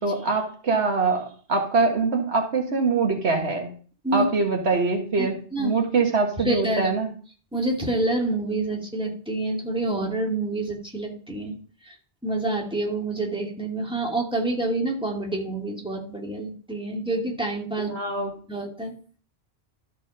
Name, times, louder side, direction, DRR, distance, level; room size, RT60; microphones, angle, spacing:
voice 1, 0.0-3.7 4.1-7.1 17.8-18.3, right 3 dB, 85° right, 3 dB, 1.9 m, -24 dB
voice 2, 5.2-5.8 6.4-6.9 7.5-11.6 11.8-12.0 12.2-18.0 18.5-18.9, right 2 dB, 5° right, -1 dB, 2.4 m, -27 dB
13.0 x 4.8 x 5.3 m, 0.42 s
omnidirectional pair, 1.1 m